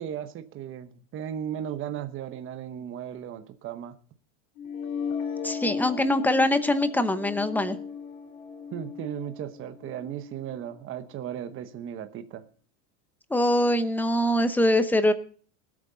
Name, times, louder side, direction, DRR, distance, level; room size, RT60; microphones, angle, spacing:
voice 1, 0.0-4.0 8.7-12.4, right 10 dB, 30° right, 9 dB, 1.0 m, -36 dB
sound 1, 4.6-10.6, left 6 dB, 75° left, 2.9 m, -36 dB
voice 2, 5.4-7.8 13.3-15.1, left 1 dB, 5° left, 10 dB, 0.8 m, -23 dB
19.5 x 8.6 x 3.9 m, 0.44 s
supercardioid pair, 145°, 42 cm